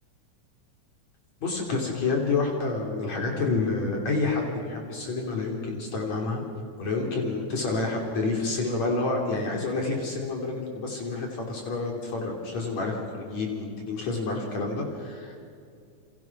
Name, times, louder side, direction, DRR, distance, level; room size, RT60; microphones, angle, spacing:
voice 1, 1.4-6.4 6.8-15.4, left 3 dB, 65° left, 0 dB, 4.3 m, -29 dB
29.0 x 28.0 x 6.0 m, 2.4 s
omnidirectional pair, 3.4 m